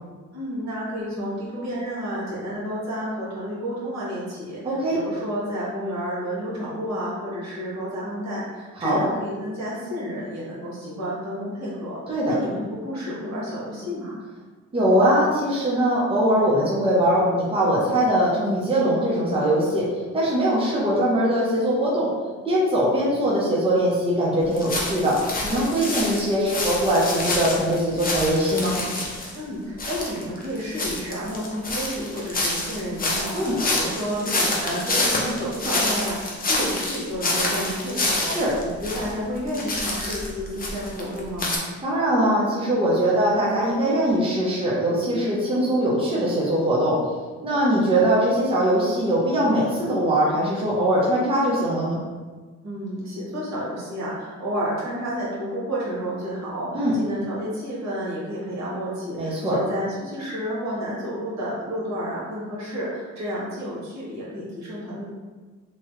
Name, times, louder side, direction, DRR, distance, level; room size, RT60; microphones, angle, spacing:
voice 1, 0.3-14.2 29.3-41.6 52.6-65.0, equal, 65° right, -7 dB, 1.4 m, -30 dB
voice 2, 4.6-5.0 8.8-9.0 12.1-12.3 14.7-19.8 20.1-22.1 22.4-25.2 25.4-28.8 33.3-33.5 38.2-38.5 41.8-47.0 47.4-52.0 56.7-56.9 59.2-59.6, right 1 dB, 20° right, -6 dB, 0.8 m, -21 dB
sound 1, 24.6-29.3 29.8-39.1 39.4-41.6, left 2 dB, 30° left, 0.7 m, -27 dB
3.0 x 2.3 x 3.1 m, 1.4 s
cardioid pair, 90°, 30 cm